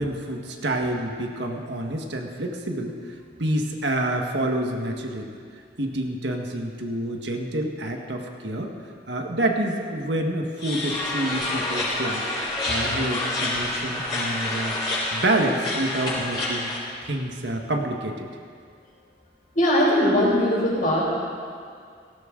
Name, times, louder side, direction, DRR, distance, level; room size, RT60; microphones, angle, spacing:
voice 1, 0.0-2.9 3.4-5.3 5.8-8.7 9.1-12.2 12.7-14.8 15.1-16.7 17.0-18.3, right 1 dB, 80° right, 2 dB, 1.5 m, -27 dB
sound 1, 10.6-16.8, left 2 dB, 25° left, 5.1 m, -28 dB
voice 2, 19.5-21.0, left 1 dB, 45° left, -6 dB, 5.2 m, -20 dB
18.5 x 16.5 x 3.9 m, 2.2 s
head